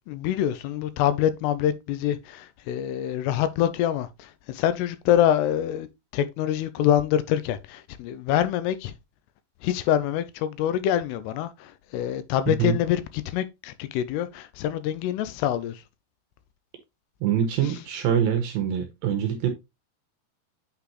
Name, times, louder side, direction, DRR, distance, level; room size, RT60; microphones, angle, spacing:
voice 1, 0.1-9.0 9.6-15.8 17.6-17.8, left 11 dB, 85° left, 2.5 m, -25 dB
voice 2, 17.2-19.5, right 9 dB, 75° right, 2.3 m, -24 dB
8.6 x 4.1 x 2.9 m
omnidirectional pair, 4.9 m